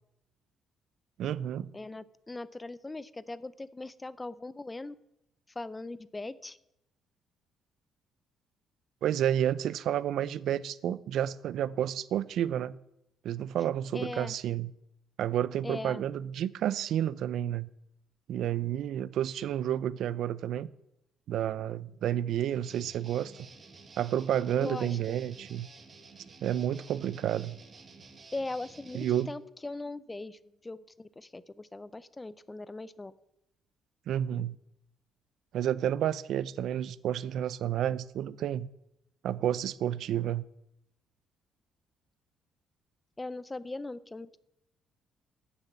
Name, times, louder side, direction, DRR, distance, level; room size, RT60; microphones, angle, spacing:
voice 1, 1.2-1.7 9.0-12.8 13.2-14.7 15.2-17.7 18.3-20.7 21.3-23.3 24.0-25.7 26.4-27.6 28.9-29.3 34.1-34.6 35.5-38.7 39.2-40.4, right 10 dB, 60° right, 0.5 m, -30 dB
voice 2, 1.7-5.0 5.6-6.6 13.9-14.3 15.6-16.0 24.6-25.2 28.3-33.1 43.2-44.4, left 2 dB, 10° left, 0.5 m, -40 dB
Guitar, 22.6-29.3, right 4 dB, 30° right, 1.5 m, -52 dB
12.5 x 7.0 x 8.4 m
cardioid pair, 160°, 0 cm